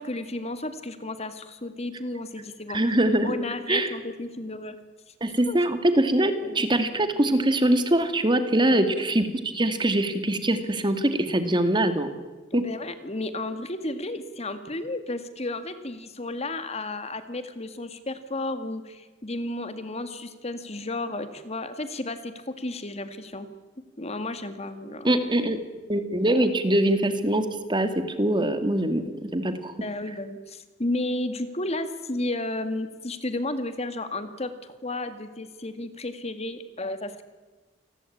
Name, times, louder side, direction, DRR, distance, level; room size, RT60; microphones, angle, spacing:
voice 1, 0.0-3.0 3.2-4.8 5.1-5.2 5.4-5.6 6.4-6.7 8.7-9.2 12.5-23.5 24.0-25.2 29.8-37.2, left 2 dB, 35° left, 10 dB, 2.1 m, -33 dB
voice 2, 2.7-3.3 3.7-3.9 5.2-9.3 9.5-12.1 12.5-12.6 25.0-25.6 25.9-29.7, right 1 dB, 25° right, 9 dB, 2.3 m, -23 dB
29.0 x 20.5 x 8.7 m, 1.3 s
head